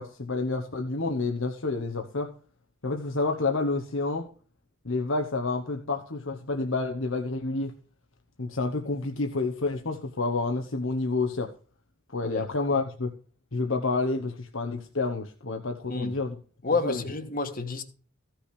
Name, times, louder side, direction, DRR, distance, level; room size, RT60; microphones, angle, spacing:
voice 1, 0.0-2.3 2.8-4.3 4.8-7.7 8.4-11.5 12.1-13.1 13.5-16.4 16.8-17.0, left 3 dB, 70° left, 1.2 m, -29 dB
voice 2, 16.6-17.8, left 3 dB, 45° left, 1.5 m, -29 dB
15.5 x 6.1 x 5.0 m
head